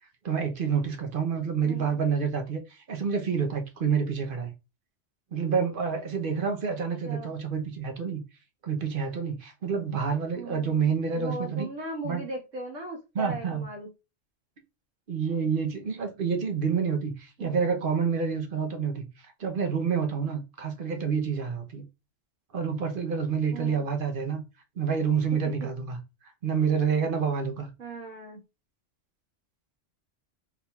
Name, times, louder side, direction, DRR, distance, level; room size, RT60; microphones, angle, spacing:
voice 1, 0.2-4.5 5.3-8.2 8.6-11.7 12.0-12.2 13.1-13.6 15.1-21.8 22.5-24.4 24.8-26.0 26.4-27.7, right 6 dB, 50° right, 0.9 m, -28 dB
voice 2, 1.6-2.0 7.1-7.3 10.3-13.9 17.4-17.8 23.5-23.8 27.8-28.4, right 1 dB, 80° right, 1.8 m, -38 dB
4.2 x 3.6 x 2.3 m
omnidirectional pair, 1.3 m